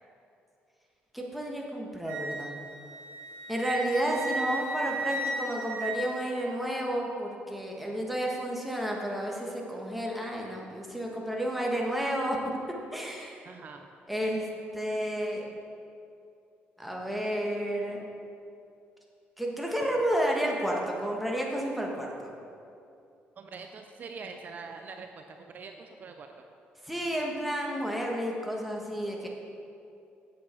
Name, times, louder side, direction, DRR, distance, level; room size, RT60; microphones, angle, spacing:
voice 1, 1.1-2.5 3.5-12.4 12.9-13.4 14.1-14.5 14.7-15.5 16.8-18.0 19.4-22.3 26.8-29.3, equal, ahead, -2 dB, 1.5 m, -31 dB
Wind instrument woodwind instrument, 2.1-6.6, right 2 dB, 70° right, 2.1 m, -35 dB
voice 2, 13.4-13.9 23.4-26.4, right 4 dB, 50° right, 5 dB, 0.5 m, -44 dB
8.5 x 7.5 x 4.5 m, 2.6 s
cardioid pair, 100°, 4 cm